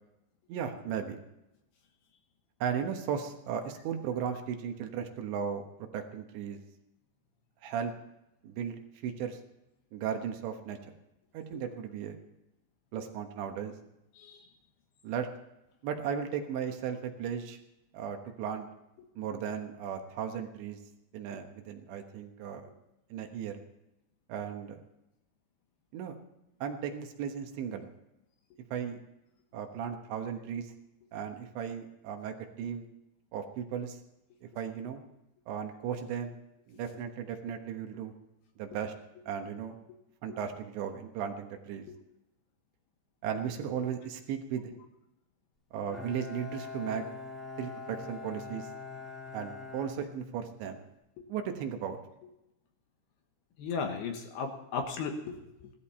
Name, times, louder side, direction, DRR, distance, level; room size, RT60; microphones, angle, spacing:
voice 1, 0.5-1.2 2.6-5.7 5.9-6.6 7.6-7.9 8.4-9.4 9.9-10.8 11.3-12.2 12.9-13.7 15.0-15.3 15.8-17.6 17.9-18.7 19.2-20.8 21.1-22.7 23.1-23.5 24.3-24.8 25.9-26.2 26.6-27.9 28.7-29.0 29.5-30.7 31.1-32.9 33.3-34.0 34.4-35.0 35.5-36.3 36.7-38.1 38.6-38.9 39.3-39.7 40.2-41.9 43.2-44.7 45.7-47.0 47.6-48.7 49.3-50.8 51.3-52.0, right 8 dB, 75° right, 5 dB, 3.4 m, -36 dB
Bowed string instrument, 45.9-50.8, left 4 dB, ahead, 1.3 m, -43 dB
voice 2, 53.6-55.7, left 5 dB, 65° left, 4 dB, 2.9 m, -36 dB
17.0 x 13.0 x 4.3 m, 0.90 s
omnidirectional pair, 5.4 m